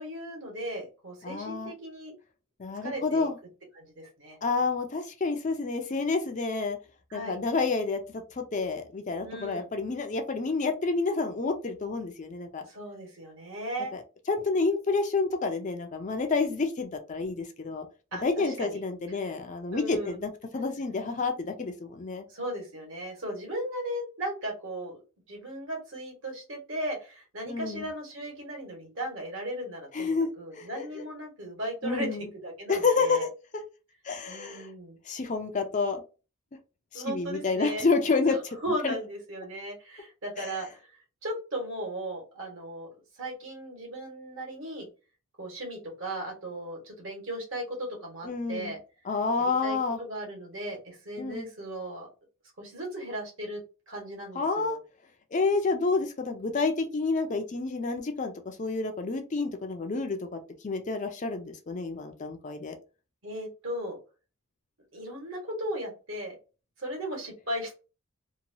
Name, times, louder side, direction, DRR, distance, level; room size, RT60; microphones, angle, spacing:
voice 1, 0.0-2.2 2.8-3.3 3.7-4.4 7.1-7.4 9.2-9.7 12.6-13.9 18.1-18.8 19.1-19.2 19.7-20.2 22.3-25.0 25.3-33.3 34.3-35.0 36.9-37.9 38.3-42.9 43.2-44.9 45.4-48.8 49.4-52.1 52.6-53.6 53.9-54.8 63.2-64.0 64.9-66.3 66.8-67.7, right 1 dB, 60° right, 0 dB, 1.4 m, -37 dB
voice 2, 1.2-1.7 2.6-3.4 4.4-6.8 7.1-12.6 13.9-14.0 14.3-17.9 18.2-22.2 27.5-27.9 29.9-30.9 31.8-32.3 32.7-33.3 34.0-34.7 35.1-36.0 36.9-38.6 38.8-39.0 40.4-40.5 48.2-48.7 49.0-50.0 51.2-51.5 54.3-54.8 55.3-62.7, left 4 dB, 35° left, 5 dB, 0.4 m, -29 dB
2.9 x 2.2 x 2.6 m, 0.32 s
head